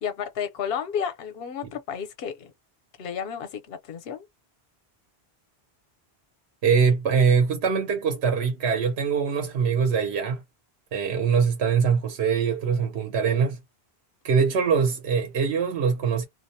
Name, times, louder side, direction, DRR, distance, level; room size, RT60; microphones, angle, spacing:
voice 1, 0.0-2.5 3.0-4.3, left 7 dB, 70° left, 0.9 m, -32 dB
voice 2, 6.6-10.4 10.9-13.6 14.2-16.3, right 6 dB, 80° right, 1.0 m, -23 dB
2.4 x 2.0 x 2.6 m
omnidirectional pair, 1.1 m